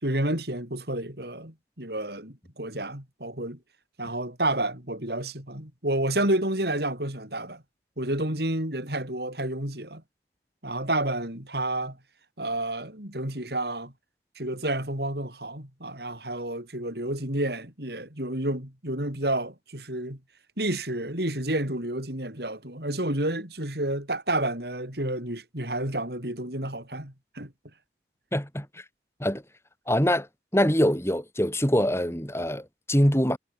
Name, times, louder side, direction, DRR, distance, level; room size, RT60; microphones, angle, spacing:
voice 1, 0.0-3.6 4.0-7.6 8.0-10.0 10.6-12.0 12.4-13.9 14.4-20.2 20.6-27.5, right 1 dB, 60° right, 6.9 m, -30 dB
voice 2, 28.3-28.8 29.2-29.4 29.9-30.3 30.5-33.4, equal, 15° left, 7.5 m, -24 dB
head